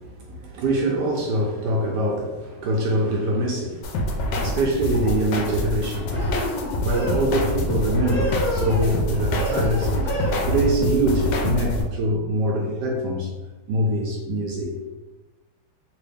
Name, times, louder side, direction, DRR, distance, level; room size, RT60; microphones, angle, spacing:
voice 1, 0.0-6.2 6.8-10.0 10.4-13.3 13.7-14.9, right 1 dB, 75° right, -1 dB, 0.9 m, -24 dB
sound 1, 3.8-11.8, left 1 dB, 70° left, 1.1 m, -25 dB
sound 2, 4.3-4.7 6.1-7.3 8.0-9.0 9.3-10.3, equal, ahead, 0.8 m, -29 dB
3.1 x 2.7 x 3.3 m, 1.2 s
omnidirectional pair, 2.1 m